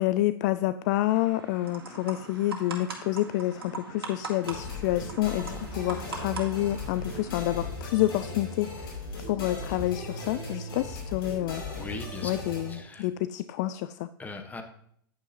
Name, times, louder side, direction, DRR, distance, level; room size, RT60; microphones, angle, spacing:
voice 1, 0.0-9.0 9.3-11.6 12.2-14.1, left 15 dB, 50° left, 14 dB, 0.3 m, -28 dB
sound 1, 1.1-7.6, right 4 dB, 80° right, 1.8 m, -41 dB
sound 2, 4.4-12.8, left 3 dB, 70° left, 3.4 m, -37 dB
voice 2, 11.7-12.3 12.7-13.1 14.2-14.6, left 3 dB, 15° left, 6 dB, 1.2 m, -39 dB
9.5 x 9.1 x 2.9 m, 0.67 s
hypercardioid pair, 100°, 12 cm